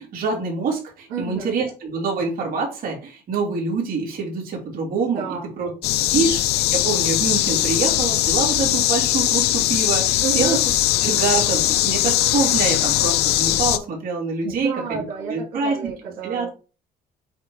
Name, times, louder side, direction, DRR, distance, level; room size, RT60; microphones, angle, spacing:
voice 1, 0.0-5.7 6.1-10.6 11.0-15.9 16.2-16.5, right 4 dB, 55° right, -1 dB, 3.1 m, -25 dB
voice 2, 1.1-1.5 5.1-5.6 6.1-6.3 10.2-10.6 14.4-16.5, right 7 dB, 90° right, -3 dB, 2.6 m, -30 dB
sound 1, 5.8-13.8, left 15 dB, 75° left, 0.6 m, -20 dB
8.0 x 3.2 x 4.8 m, 0.33 s
cardioid pair, 110°, 17 cm